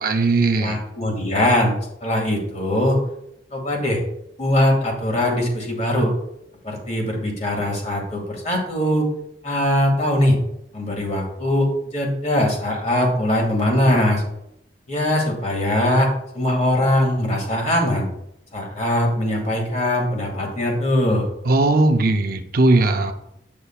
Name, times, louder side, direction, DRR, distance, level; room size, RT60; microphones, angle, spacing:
voice 1, 0.0-0.8 21.4-23.1, right 2 dB, 55° right, 5 dB, 0.6 m, -18 dB
voice 2, 0.6-3.0 3.5-4.0 4.4-6.1 6.6-9.1 9.4-10.4 10.7-14.2 14.9-16.1 16.3-18.1 18.5-21.3, left 1 dB, 40° left, 0 dB, 2.1 m, -21 dB
8.4 x 6.6 x 2.4 m, 0.80 s
head